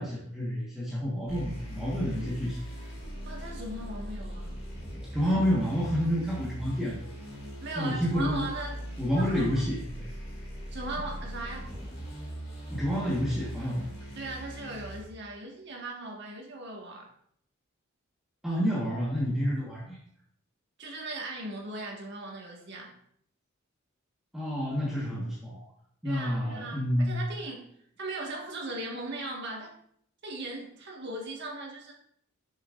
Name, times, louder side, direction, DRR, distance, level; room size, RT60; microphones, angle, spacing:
voice 1, 0.0-2.6 5.1-7.0 7.7-8.4 9.0-10.1 12.7-14.0 18.4-20.0 24.3-25.6 26.0-27.1, equal, ahead, -7 dB, 1.3 m, -29 dB
sound 1, 1.3-15.0, equal, 50° left, 2.4 m, -40 dB
voice 2, 3.2-4.6 7.6-8.8 9.2-9.5 10.7-11.6 14.1-17.1 20.8-22.9 26.0-27.7 28.0-29.7 30.2-31.9, right 2 dB, 55° right, -1 dB, 1.6 m, -38 dB
7.0 x 6.4 x 2.5 m, 0.67 s
head